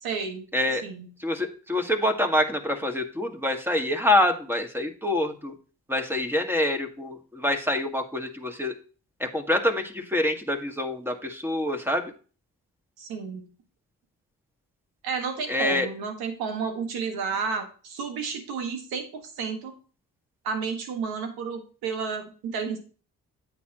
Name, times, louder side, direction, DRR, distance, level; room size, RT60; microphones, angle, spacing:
voice 1, 0.0-0.4 0.8-1.1 13.0-13.5 15.0-19.7 20.4-22.8, right 5 dB, 85° right, 5 dB, 1.7 m, -31 dB
voice 2, 0.5-0.8 1.2-5.5 5.9-8.7 9.2-12.1 15.5-15.9, left 1 dB, 5° right, 4 dB, 1.8 m, -26 dB
9.1 x 7.7 x 3.0 m, 0.39 s
supercardioid pair, 45°, 36 cm